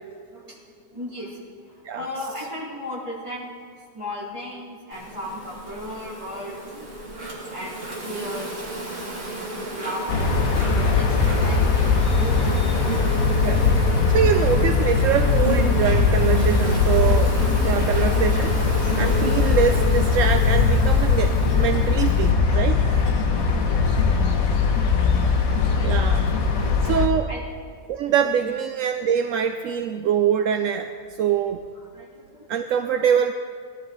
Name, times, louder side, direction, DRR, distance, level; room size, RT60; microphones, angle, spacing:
voice 1, 0.1-0.6 0.9-3.6 3.9-7.2 7.5-9.1 9.5-10.5 10.9-11.6 12.1-12.9 23.2-25.1 25.6-26.1 26.5-27.0 27.3-27.4 27.7-27.8 28.1-28.2 31.9-32.5, left 1 dB, 20° right, -7 dB, 3.6 m, -37 dB
Insect, 4.9-22.3, right 2 dB, 50° right, 2.7 m, -32 dB
sound 1, 10.1-27.1, left 5 dB, 60° left, 1.5 m, -20 dB
voice 2, 13.4-17.4 17.6-22.8 25.8-26.2 26.8-27.3 27.9-31.6 32.5-33.3, right 8 dB, 70° right, 7 dB, 0.8 m, -24 dB
18.5 x 12.0 x 4.0 m, 2.1 s
omnidirectional pair, 1.7 m